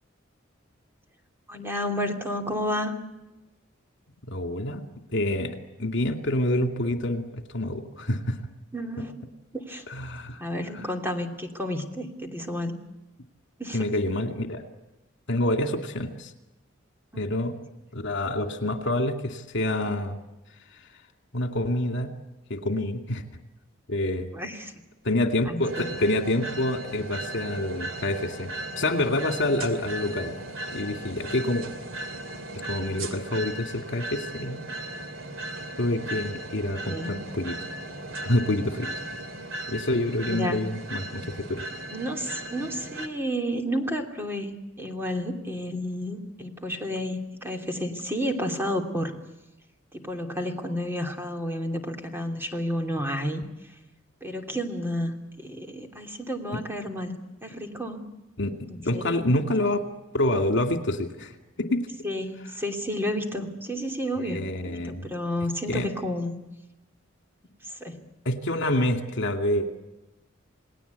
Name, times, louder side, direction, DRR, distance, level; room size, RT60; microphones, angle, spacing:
voice 1, 1.5-3.0 8.7-9.2 9.5-9.8 10.4-12.8 13.6-13.8 17.1-17.2 24.3-24.7 25.5-25.9 36.8-37.2 40.3-40.6 41.9-49.2 49.9-53.4 54.2-58.0 58.7-59.2 62.0-66.3 67.6-68.0, equal, 10° right, 4 dB, 2.8 m, -31 dB
voice 2, 4.3-4.8 5.1-8.4 9.9-10.4 10.7-10.8 13.7-14.6 15.3-16.3 17.2-17.6 17.9-20.2 21.3-22.1 22.5-23.2 23.9-24.3 25.0-28.5 28.8-30.3 30.7-31.7 32.7-34.6 35.8-37.6 38.3-38.9 39.7-41.6 58.4-59.8 60.1-61.9 64.2-65.1 65.7-65.9 68.2-69.7, left 1 dB, 65° left, 5 dB, 2.4 m, -27 dB
sound 1, 25.6-43.1, right 1 dB, 70° right, 2.7 m, -37 dB
29.0 x 19.5 x 8.3 m, 1.0 s
head